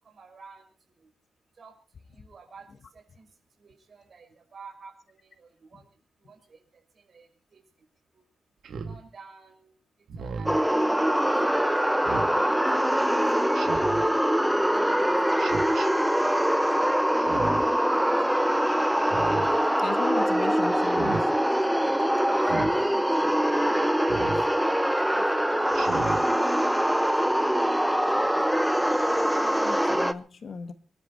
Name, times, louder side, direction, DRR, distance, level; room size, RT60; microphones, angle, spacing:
voice 1, 0.1-0.6 1.6-1.7 2.1-2.7 2.9-3.3 3.6-5.9 6.2-6.4 7.1-7.6 8.8-9.7 10.2-10.7 11.0-11.3 11.8-12.0 12.7-13.2 13.7-14.2 14.6-15.1 15.4-15.5 16.0-16.1 21.4-21.5 21.9-23.2 23.6-25.2 25.6-26.4, right 5 dB, 45° right, 4 dB, 5.8 m, -47 dB
Speech synthesizer, 8.6-9.0 10.1-10.6 12.0-12.3 13.5-14.0 15.4-15.9 17.2-17.7 19.0-19.5 20.8-21.2 22.4-22.7 24.1-24.4 25.7-26.2, right 5 dB, 75° right, 3.2 m, -34 dB
sound 1, 10.5-30.1, equal, 5° right, 0.8 m, -23 dB
voice 2, 19.8-21.1 29.5-30.7, left 5 dB, 45° left, 10 dB, 1.4 m, -36 dB
26.0 x 11.5 x 4.4 m, 0.37 s
wide cardioid pair, 140°, 0 cm